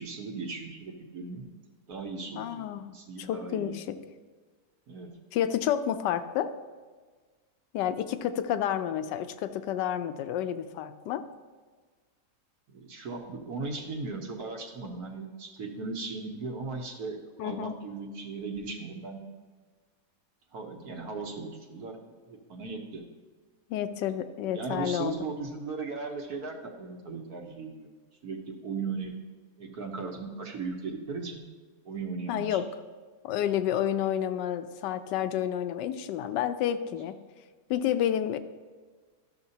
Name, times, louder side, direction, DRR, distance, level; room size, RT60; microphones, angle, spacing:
voice 1, 0.0-1.5 1.9-3.7 4.9-5.1 12.7-19.2 20.5-22.0 22.3-23.0 24.5-27.9 28.2-29.1 29.6-31.4 31.8-32.6, right 4 dB, 65° right, 2 dB, 1.4 m, -37 dB
voice 2, 2.3-2.9 3.2-4.0 5.3-6.5 7.7-11.2 17.4-17.8 23.7-25.2 32.3-32.7 33.2-37.2 37.7-38.4, left 10 dB, 85° left, 10 dB, 1.2 m, -30 dB
12.5 x 6.6 x 2.8 m, 1.5 s
omnidirectional pair, 1.9 m